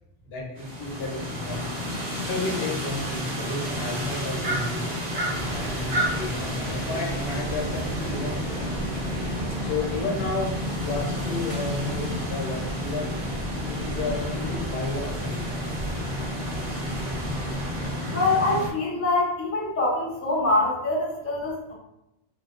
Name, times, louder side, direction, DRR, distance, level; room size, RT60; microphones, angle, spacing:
voice 1, 0.2-4.8 5.2-8.7 9.6-13.2 13.7-15.4, left 3 dB, 80° left, 0 dB, 0.9 m, -32 dB
sound 1, 0.6-18.7, equal, 50° right, 0.7 m, -31 dB
sound 2, 5.3-17.9, equal, 10° right, 0.9 m, -34 dB
voice 2, 18.1-21.7, left 2 dB, 25° left, -3 dB, 0.3 m, -24 dB
2.6 x 2.0 x 2.3 m, 0.87 s
omnidirectional pair, 1.0 m